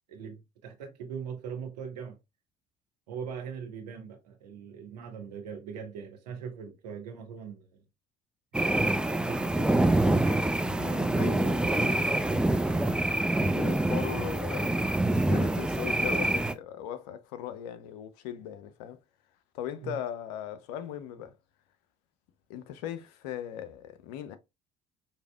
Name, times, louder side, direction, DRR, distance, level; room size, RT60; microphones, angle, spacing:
voice 1, 0.1-2.2 3.1-7.8 19.8-20.0, right 7 dB, 85° right, 0.9 m, -41 dB
sound 1, 8.5-16.5, right 1 dB, 5° right, 0.4 m, -26 dB
voice 2, 10.6-12.3 13.4-15.0 15.2-19.0 19.5-21.4 22.5-24.4, left 11 dB, 75° left, 0.6 m, -39 dB
4.8 x 2.7 x 2.2 m
hypercardioid pair, 55°, 20 cm